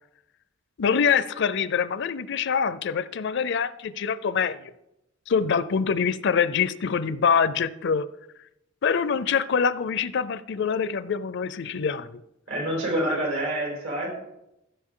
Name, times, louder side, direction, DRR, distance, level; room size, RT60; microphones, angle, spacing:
voice 1, 0.8-4.7 5.3-8.1 8.8-12.2, left 6 dB, 60° left, 16 dB, 0.5 m, -25 dB
voice 2, 12.5-14.1, right 1 dB, 85° right, -2 dB, 4.6 m, -27 dB
15.5 x 6.8 x 3.8 m, 0.86 s
head